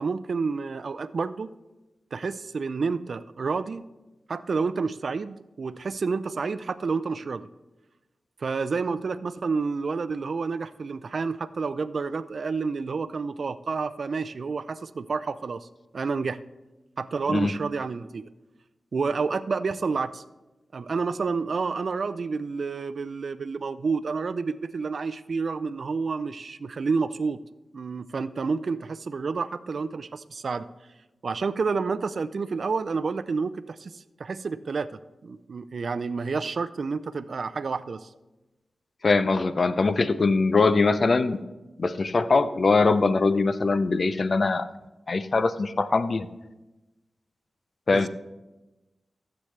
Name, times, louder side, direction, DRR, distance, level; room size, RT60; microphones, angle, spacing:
voice 1, 0.0-1.5 2.1-3.8 4.3-7.5 8.4-15.7 15.9-16.4 17.0-18.2 18.9-20.2 20.7-27.4 27.7-30.7 31.2-38.1 47.9-48.1, right 4 dB, 65° right, 15 dB, 0.4 m, -29 dB
voice 2, 39.0-41.4 41.8-44.7 45.1-46.3 47.9-48.1, left 3 dB, 55° left, 13 dB, 0.5 m, -22 dB
15.0 x 8.0 x 3.2 m, 1.1 s
cardioid pair, 65°, 0 cm